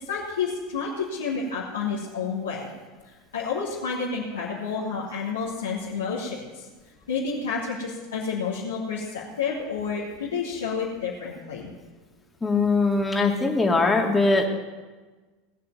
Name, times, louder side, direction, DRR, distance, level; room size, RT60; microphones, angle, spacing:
voice 1, 0.1-2.7 3.3-6.5 7.1-11.7, left 5 dB, 80° left, -7 dB, 2.9 m, -30 dB
voice 2, 12.4-14.5, left 3 dB, 15° left, 2 dB, 2.7 m, -21 dB
19.0 x 6.7 x 9.5 m, 1.3 s
figure-of-eight pair, 80°, 0 cm